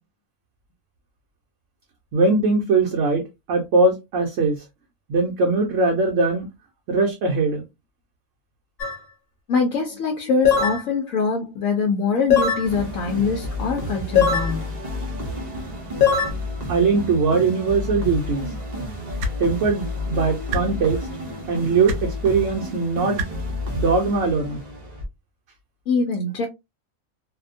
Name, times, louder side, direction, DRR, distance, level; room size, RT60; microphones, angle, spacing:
voice 1, 2.1-3.2 3.5-4.6 5.1-6.5 6.9-7.6 16.7-18.5 19.4-21.1 21.5-23.2 23.7-24.6, right 3 dB, 65° right, 1.0 m, -21 dB
sound 1, 8.8-9.0 10.4-10.8 12.3-12.7 14.2-14.5 16.0-16.3, left 7 dB, 50° left, 1.0 m, -18 dB
voice 2, 9.5-14.6 25.9-26.5, left 4 dB, 75° left, 1.0 m, -23 dB
sound 2, 12.6-25.1, left 1 dB, 40° right, 0.6 m, -31 dB
sound 3, 19.2-19.4 20.5-20.6 21.9-22.0 23.2-23.3 24.5-24.6, right 1 dB, 85° right, 1.1 m, -26 dB
2.7 x 2.2 x 2.5 m
omnidirectional pair, 1.5 m